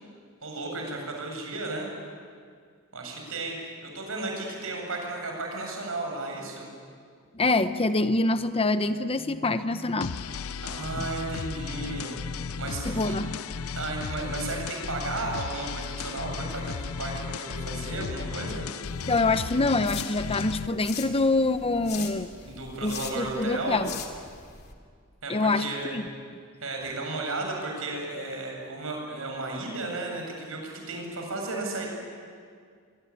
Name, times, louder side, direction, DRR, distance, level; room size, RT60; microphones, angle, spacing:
voice 1, 0.4-1.9 2.9-6.7 10.6-12.2 12.6-13.2 13.8-18.7 22.4-23.8 25.2-26.0 26.6-31.9, right 2 dB, 65° right, 1 dB, 8.0 m, -34 dB
voice 2, 7.3-10.1 11.0-11.1 12.8-13.3 19.1-22.3 22.8-23.9 25.3-25.7 25.9-26.0, left 2 dB, 25° left, 11 dB, 0.8 m, -25 dB
sound 1, 10.0-20.7, left 5 dB, 70° left, 0.6 m, -35 dB
sound 2, 18.8-24.7, left 7 dB, 50° left, 2.7 m, -42 dB
24.5 x 24.5 x 9.9 m, 2.1 s
head